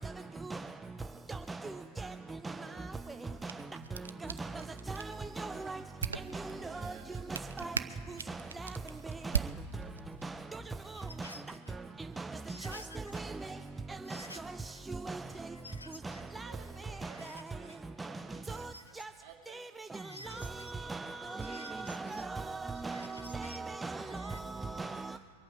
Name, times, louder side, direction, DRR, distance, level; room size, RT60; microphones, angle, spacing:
voice 1, 1.6-3.5 3.7-4.7 7.6-9.4 15.5-15.9 20.2-20.8, left 2 dB, 50° left, 3.7 m, -67 dB
sound 1, 3.2-10.3, right 6 dB, 70° right, 0.4 m, -41 dB
voice 2, 5.4-5.8 6.3-6.4 6.8-6.9 7.3-7.7 8.3-8.7 9.2-9.3 10.2-10.3 11.2-11.3 12.2-12.3 12.6-12.8 13.1-13.3 14.1-14.2 15.1-15.2 16.0-16.5 17.0-17.1 18.0-18.1 18.5-18.6 19.0-19.1 20.3-25.2, right 3 dB, 10° right, 0.3 m, -39 dB
voice 3, 6.6-7.5 7.8-7.9 8.2-8.4 12.9-14.3 16.1-19.9, right 9 dB, 45° right, 1.9 m, -58 dB
sound 2, 10.8-11.8 12.5-13.3 13.7-13.8 14.1-14.8 15.3-16.3 16.6-17.8 18.3-19.3 19.9-20.7 21.3-22.2 22.7-23.6 24.1-24.4, left 2 dB, 80° left, 0.5 m, -52 dB
23.5 x 8.5 x 5.0 m
figure-of-eight pair, 90°, 0 cm